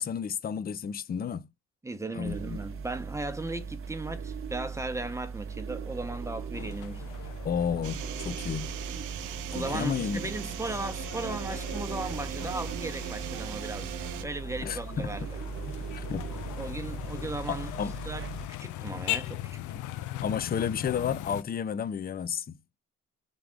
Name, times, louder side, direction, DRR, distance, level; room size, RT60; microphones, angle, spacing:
voice 1, 0.0-1.5 2.1-2.6 7.4-8.7 9.5-10.2 14.6-15.1 15.7-16.2 17.5-17.9 20.2-22.6, left 7 dB, 30° left, 0.5 m, -32 dB
voice 2, 1.8-7.0 9.5-15.4 16.6-17.7 18.1-18.2 18.6-19.8, right 2 dB, 10° right, 0.9 m, -37 dB
sound 1, 2.2-18.5, right 6 dB, 45° right, 0.7 m, -39 dB
sound 2, 6.5-21.4, left 14 dB, 80° left, 0.5 m, -40 dB
sound 3, 7.8-14.2, right 11 dB, 85° right, 0.7 m, -39 dB
3.7 x 3.4 x 3.6 m
cardioid pair, 90°, 30 cm